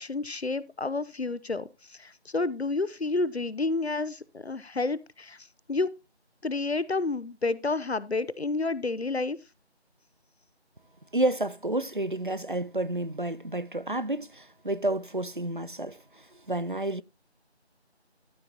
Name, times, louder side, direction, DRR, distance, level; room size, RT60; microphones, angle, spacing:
voice 1, 0.0-5.4 5.7-5.9 6.4-9.4, left 3 dB, 70° left, 0.8 m, -30 dB
voice 2, 11.1-16.0 16.5-17.0, right 1 dB, 50° right, 0.5 m, -30 dB
13.0 x 8.1 x 2.9 m
figure-of-eight pair, 175°, 33 cm